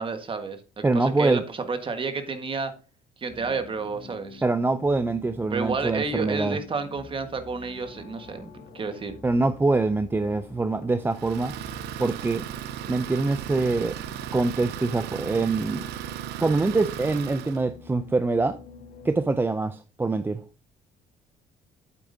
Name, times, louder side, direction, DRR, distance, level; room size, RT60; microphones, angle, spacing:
voice 1, 0.0-2.7 3.2-4.4 5.5-9.2, right 4 dB, 30° right, 1.5 m, -31 dB
voice 2, 0.8-1.4 4.4-6.6 9.2-11.5 12.0-12.5 12.9-14.0 14.3-15.9 16.4-18.6 19.0-20.4, right 3 dB, 15° right, 0.4 m, -24 dB
sound 1, 3.3-19.6, left 4 dB, 75° left, 1.7 m, -47 dB
Idling, 11.1-17.6, right 12 dB, 80° right, 0.5 m, -36 dB
8.6 x 8.3 x 2.7 m
cardioid pair, 110°, 17 cm